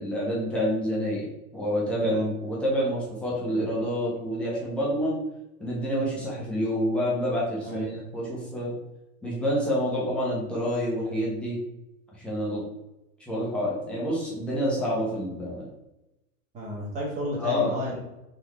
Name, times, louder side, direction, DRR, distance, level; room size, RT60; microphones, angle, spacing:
voice 1, 0.0-5.2 5.6-8.7 9.2-11.6 12.1-12.6 13.2-15.7 17.4-17.8, equal, 5° left, -6 dB, 0.6 m, -28 dB
voice 2, 7.6-8.0 16.5-18.0, equal, 20° right, -3 dB, 0.9 m, -32 dB
3.8 x 3.3 x 3.2 m, 0.95 s
supercardioid pair, 165°, 42 cm